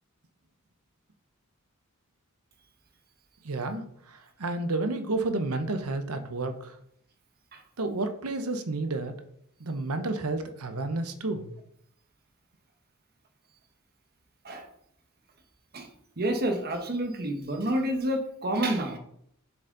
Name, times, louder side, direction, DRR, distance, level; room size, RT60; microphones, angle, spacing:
voice 1, 3.4-6.8 7.8-9.2 9.6-11.5, right 2 dB, 80° right, 8 dB, 0.9 m, -31 dB
voice 2, 16.2-19.0, right 1 dB, 45° right, 4 dB, 1.3 m, -29 dB
7.1 x 6.9 x 3.9 m, 0.70 s
head